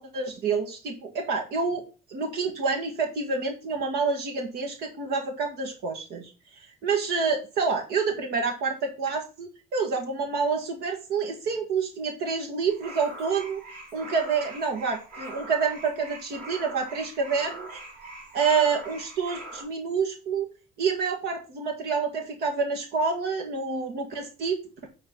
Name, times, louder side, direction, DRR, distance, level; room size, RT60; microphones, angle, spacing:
voice 1, 0.1-1.8 2.1-6.3 6.8-8.7 9.0-13.6 13.9-17.8 18.3-20.5 20.8-24.6, right 5 dB, 75° right, 2 dB, 1.7 m, -28 dB
sound 1, 12.7-19.6, right 2 dB, 55° right, 4.0 m, -42 dB
8.6 x 4.0 x 5.3 m, 0.32 s
cardioid pair, 110°, 17 cm